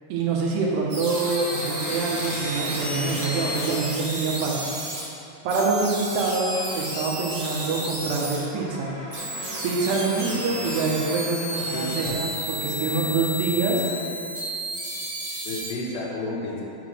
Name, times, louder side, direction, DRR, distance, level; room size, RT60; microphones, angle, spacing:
voice 1, 0.1-4.7 5.4-8.9 9.6-13.8, right 3 dB, 80° right, -3 dB, 2.9 m, -26 dB
sound 1, 0.9-5.0 5.5-8.4 9.1-15.7, right 1 dB, 50° right, 1.8 m, -32 dB
sound 2, 1.1-3.9 6.1-6.2 6.5-6.9 7.4-12.3, left 1 dB, 65° left, 2.1 m, -37 dB
voice 2, 11.7-12.2 12.8-13.1 15.4-16.6, left 1 dB, 80° left, -4 dB, 3.1 m, -32 dB
9.2 x 6.0 x 3.2 m, 2.8 s
omnidirectional pair, 4.9 m